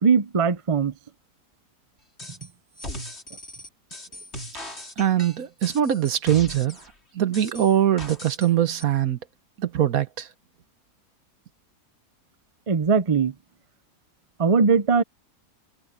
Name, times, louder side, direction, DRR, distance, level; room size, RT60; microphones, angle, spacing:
voice 1, 0.0-0.9 12.7-13.3 14.4-15.0, right 5 dB, 40° right, 0.4 m, -20 dB
sound 1, 2.2-2.5 2.8-6.9 7.3-8.5 8.8-8.9, left 1 dB, 40° left, 4.7 m, -38 dB
voice 2, 5.0-6.8 7.1-9.2 9.6-10.3, right 10 dB, 65° right, 1.4 m, -22 dB
omnidirectional pair, 1.7 m